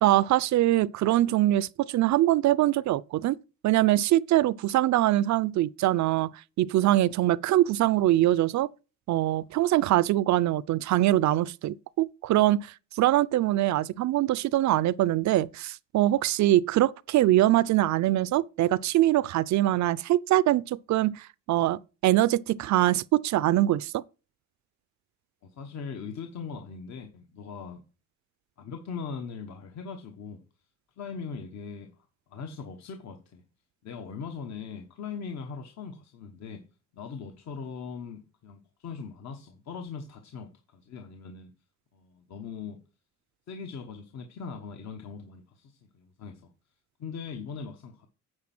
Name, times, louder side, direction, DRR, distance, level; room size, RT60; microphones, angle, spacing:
voice 1, 0.0-3.4 3.6-6.3 6.6-8.7 9.1-24.0, right 14 dB, 65° right, 0.5 m, -23 dB
voice 2, 25.4-27.8 28.6-30.4 31.0-31.9 32.3-33.4 33.8-36.6 36.9-41.5 41.9-42.8 43.5-46.5 47.0-48.1, left 5 dB, 65° left, 1.2 m, -40 dB
9.6 x 4.6 x 6.0 m
cardioid pair, 90°, 30 cm